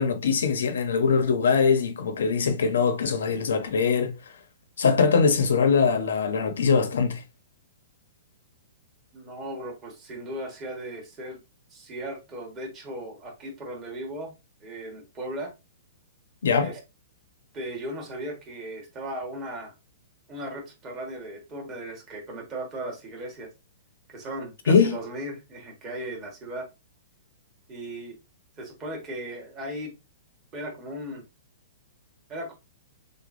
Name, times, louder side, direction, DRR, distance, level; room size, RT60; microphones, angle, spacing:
voice 1, 0.0-4.1 4.8-7.2 16.4-16.7 24.7-25.0, left 5 dB, 85° left, 0.9 m, -22 dB
voice 2, 9.1-11.4 11.7-14.3 14.6-15.5 16.6-16.8 17.5-19.7 20.3-23.5 24.1-26.7 27.7-28.2 28.6-29.9 30.5-31.2 32.3-32.5, right 1 dB, 15° right, 1.2 m, -37 dB
6.5 x 2.3 x 2.6 m
hypercardioid pair, 180°, 0 cm